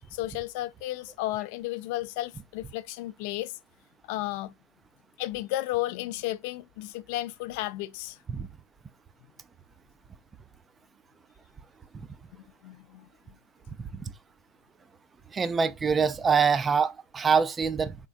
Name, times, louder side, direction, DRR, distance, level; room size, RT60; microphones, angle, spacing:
voice 1, 0.1-3.5 4.1-4.5 5.2-8.2 12.6-13.0, left 16 dB, 55° left, 0.4 m, -33 dB
voice 2, 15.3-18.0, right 6 dB, 20° right, 0.4 m, -24 dB
3.6 x 3.6 x 2.4 m
hypercardioid pair, 100°, 0 cm